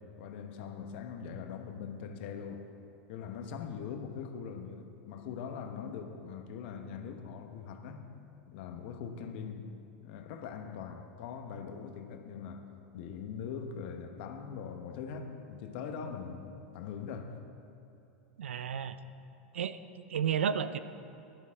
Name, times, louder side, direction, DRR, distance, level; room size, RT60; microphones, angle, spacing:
voice 1, 0.0-2.7 3.1-8.1 8.5-9.7 10.0-12.7 12.9-17.3, left 6 dB, 60° left, 6 dB, 1.2 m, -42 dB
voice 2, 18.4-19.0 19.5-19.8 20.1-20.8, right 8 dB, 85° right, 13 dB, 0.5 m, -31 dB
14.5 x 11.5 x 3.6 m, 2.8 s
hypercardioid pair, 100°, 6 cm